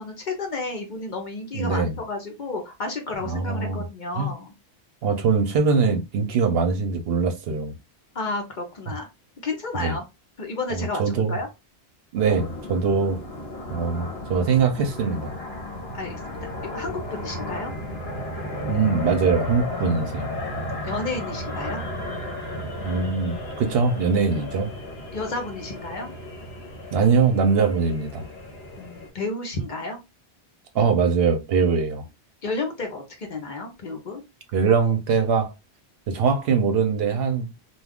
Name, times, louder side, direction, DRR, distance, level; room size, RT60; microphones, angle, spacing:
voice 1, 0.0-4.5 8.1-9.1 9.4-10.0 10.4-11.5 15.9-17.7 20.6-21.8 25.1-26.1 28.8-30.0 32.4-34.2, left 3 dB, 50° left, 0.8 m, -32 dB
voice 2, 1.5-1.9 3.2-3.8 4.2-4.3 5.0-7.7 9.7-10.0 10.7-11.4 12.1-13.2 13.7-15.4 18.6-20.3 22.8-24.7 26.9-28.3 30.7-32.1 34.5-35.5 36.1-37.5, right 5 dB, 65° right, 0.8 m, -22 dB
sound 1, 12.2-29.1, left 1 dB, 65° left, 1.1 m, -34 dB
2.3 x 2.3 x 3.4 m
omnidirectional pair, 1.1 m